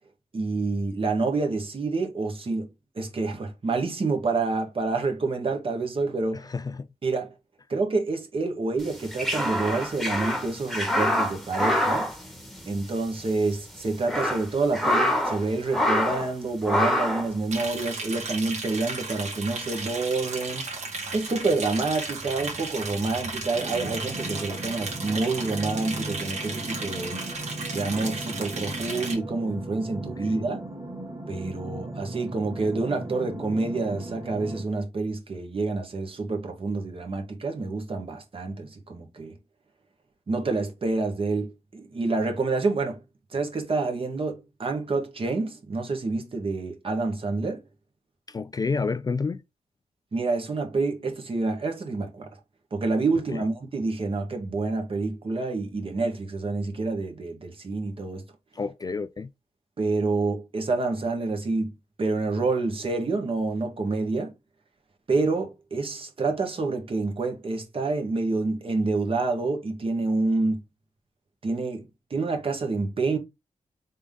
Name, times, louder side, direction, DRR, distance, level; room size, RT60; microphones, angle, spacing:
voice 1, 0.3-2.7 2.9-6.4 7.0-7.3 7.7-12.1 12.6-20.7 21.1-27.2 27.7-30.6 31.3-39.3 40.3-43.0 43.3-47.6 50.1-52.3 52.7-58.2 59.8-61.7 62.0-64.3 65.1-70.6 71.4-73.2, right 3 dB, 45° right, 1.3 m, -28 dB
voice 2, 6.4-6.9 30.2-30.5 48.3-49.4 53.3-53.4 58.6-59.3, left 4 dB, 30° left, 0.3 m, -29 dB
sound 1, 8.9-13.0 13.2-13.3 13.8-15.4 15.7-16.3 16.6-17.3, left 1 dB, ahead, 1.3 m, -26 dB
Liquid, 17.5-29.1, right 3 dB, 70° right, 1.7 m, -35 dB
sound 2, 23.5-34.6, right 1 dB, 30° right, 1.9 m, -37 dB
3.7 x 3.6 x 3.6 m
cardioid pair, 90°, 12 cm